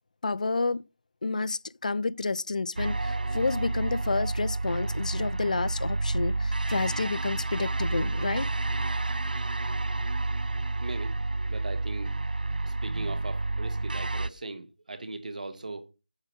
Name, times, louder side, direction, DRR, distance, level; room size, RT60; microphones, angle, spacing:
voice 1, 0.2-0.8 1.2-8.5, left 3 dB, 60° left, 0.4 m, -30 dB
sound 1, 2.8-14.3, right 2 dB, 80° right, 0.5 m, -30 dB
voice 2, 10.8-11.2 11.5-12.2 12.6-15.9, right 2 dB, 65° right, 1.1 m, -39 dB
8.0 x 4.9 x 5.1 m
figure-of-eight pair, 170°, 5 cm